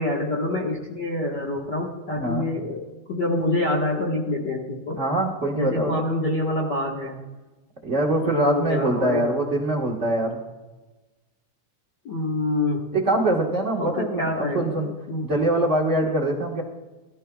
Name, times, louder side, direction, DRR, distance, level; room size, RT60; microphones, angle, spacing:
voice 1, 0.0-5.0 5.5-7.2 8.2-9.3 12.0-12.9 13.8-15.3, left 2 dB, 45° left, -3 dB, 1.6 m, -26 dB
voice 2, 2.1-2.5 5.0-6.1 7.8-10.4 12.9-14.9 15.2-16.6, right 1 dB, 45° right, 1 dB, 0.9 m, -23 dB
21.0 x 13.0 x 2.3 m, 1.2 s
omnidirectional pair, 3.7 m